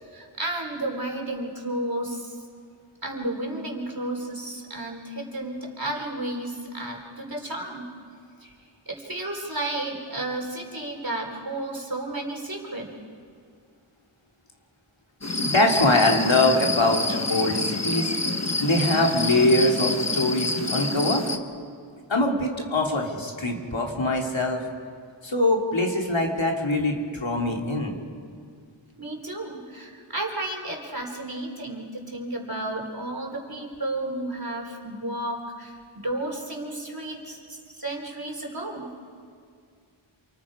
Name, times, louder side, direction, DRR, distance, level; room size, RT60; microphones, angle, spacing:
voice 1, 0.1-2.4 3.0-7.8 8.4-8.5 8.9-12.9 29.0-38.8, right 1 dB, 45° right, 0 dB, 4.1 m, -32 dB
sound 1, 15.2-21.4, left 2 dB, 30° left, 1.3 m, -27 dB
voice 2, 15.4-18.1 18.6-21.2 22.1-24.6 25.2-28.0, left 1 dB, 70° left, 0 dB, 2.8 m, -23 dB
28.0 x 26.0 x 5.0 m, 2.2 s
wide cardioid pair, 45°, 48 cm